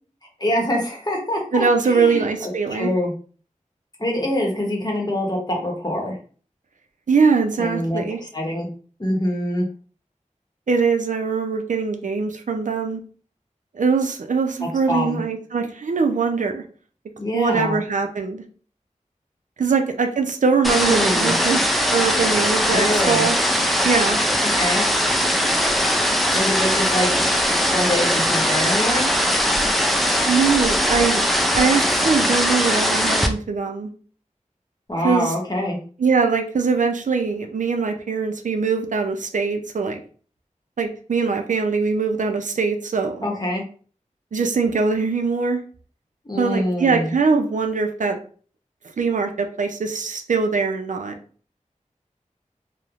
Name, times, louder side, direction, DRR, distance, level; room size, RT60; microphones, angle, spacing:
voice 1, 0.4-3.1 4.0-6.2 7.6-8.7 9.0-9.7 14.6-15.2 17.2-17.8 20.7-21.4 22.7-23.3 24.4-24.8 26.3-27.2 27.7-29.1 34.9-35.8 43.2-43.6 46.2-47.1, left 1 dB, 30° left, 0 dB, 0.8 m, -25 dB
voice 2, 1.5-2.9 7.1-8.2 10.7-13.0 13.7-16.6 17.3-18.4 19.6-21.6 21.9-23.4 23.8-24.2 30.3-31.3 31.5-33.9 35.0-35.3 36.0-40.0 40.8-43.3 44.3-45.6 46.4-48.2 49.0-51.2, right 5 dB, 75° right, 4 dB, 0.4 m, -22 dB
sound 1, 20.6-33.3, equal, ahead, 0.3 m, -20 dB
3.0 x 2.0 x 2.4 m, 0.42 s
wide cardioid pair, 65°, 13 cm